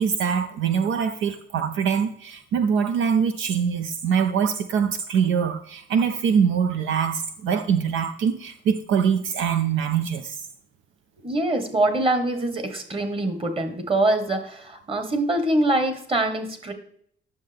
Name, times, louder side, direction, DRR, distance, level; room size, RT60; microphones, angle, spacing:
voice 1, 0.0-10.4, right 7 dB, 80° right, 0.6 m, -23 dB
voice 2, 11.2-16.7, right 2 dB, 25° right, 1.6 m, -24 dB
9.6 x 6.7 x 3.5 m
cardioid pair, 90°, 20 cm